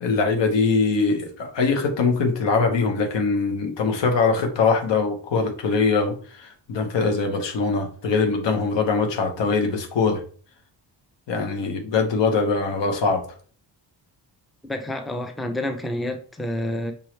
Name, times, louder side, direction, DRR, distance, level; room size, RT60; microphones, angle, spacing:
voice 1, 0.0-10.2 11.3-13.2, left 4 dB, 80° left, 1.1 m, -22 dB
voice 2, 14.6-16.9, left 1 dB, ahead, 0.5 m, -28 dB
5.4 x 3.0 x 3.2 m
cardioid pair, 90°, 42 cm